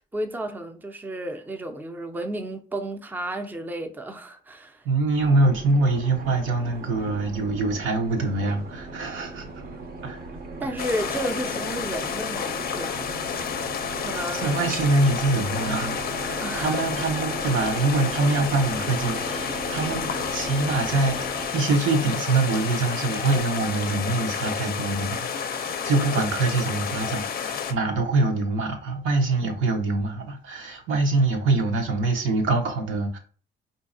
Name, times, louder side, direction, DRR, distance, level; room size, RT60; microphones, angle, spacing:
voice 1, 0.1-4.9 10.6-12.9 14.0-14.6 16.4-16.8, right 1 dB, 10° right, 0.5 m, -32 dB
voice 2, 4.8-9.4 10.0-10.3 14.3-33.2, right 3 dB, 80° right, 0.9 m, -24 dB
sound 1, 5.2-21.5, right 2 dB, 50° right, 0.7 m, -37 dB
sound 2, 10.8-27.7, left 7 dB, 50° left, 0.5 m, -30 dB
sound 3, 17.4-23.4, left 3 dB, 20° left, 0.8 m, -45 dB
3.9 x 2.7 x 2.6 m
cardioid pair, 90°, 20 cm